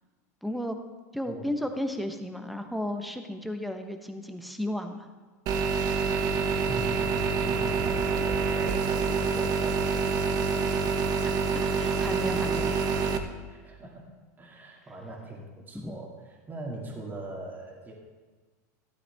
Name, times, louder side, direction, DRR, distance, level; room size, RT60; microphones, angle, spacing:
voice 1, 0.4-0.8 1.1-5.1 11.5-12.7 15.7-15.9, left 1 dB, ahead, 6 dB, 1.1 m, -34 dB
sound 1, 5.5-13.2, right 5 dB, 45° right, 1.0 m, -27 dB
voice 2, 6.7-10.8 13.5-17.9, right 1 dB, 20° right, -2 dB, 2.3 m, -41 dB
12.5 x 12.0 x 3.5 m, 1.4 s
hypercardioid pair, 115°, 10 cm